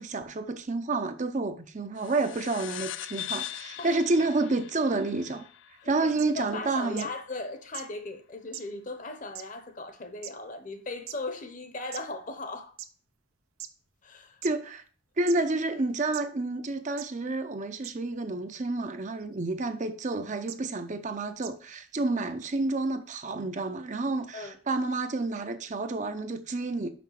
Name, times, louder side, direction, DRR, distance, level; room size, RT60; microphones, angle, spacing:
voice 1, 0.0-5.4 5.9-7.1 14.4-14.8 15.2-26.9, right 3 dB, 35° right, 0.5 m, -29 dB
sound 1, 2.0-6.9, left 12 dB, 60° left, 0.3 m, -41 dB
voice 2, 5.8-12.8 14.0-14.4 24.3-24.6, left 2 dB, 40° left, 0.9 m, -38 dB
sound 2, 6.2-6.3 7.0-7.1 7.7-7.8 8.5-8.6 9.3-9.4 10.2-10.3 11.1-11.2 11.9-12.0 12.8-12.9 13.6-13.7 14.4-14.5 15.3-15.4 16.1-16.2 17.0-17.1 17.8-17.9 19.2-19.4 20.5-20.6 21.4-21.5, right 12 dB, 90° right, 0.7 m, -39 dB
6.0 x 5.6 x 5.7 m
head